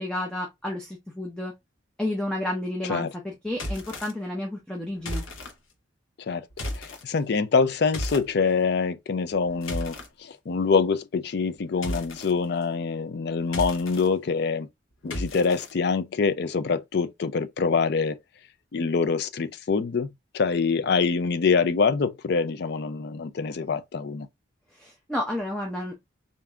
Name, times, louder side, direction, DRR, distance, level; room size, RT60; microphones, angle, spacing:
voice 1, 0.0-1.5 2.0-5.2 24.7-25.9, left 1 dB, 5° left, 0.6 m, -31 dB
sound 1, 3.5-4.1 5.0-5.5 6.5-7.0 7.9-8.3 9.3-10.1 11.8-12.3 13.4-14.1 15.1-15.7, left 1 dB, 75° left, 0.9 m, -33 dB
voice 2, 6.8-10.0 10.5-14.7 15.0-18.2 18.7-20.1 20.3-24.3, left 5 dB, 50° left, 0.4 m, -25 dB
3.5 x 2.6 x 3.4 m
head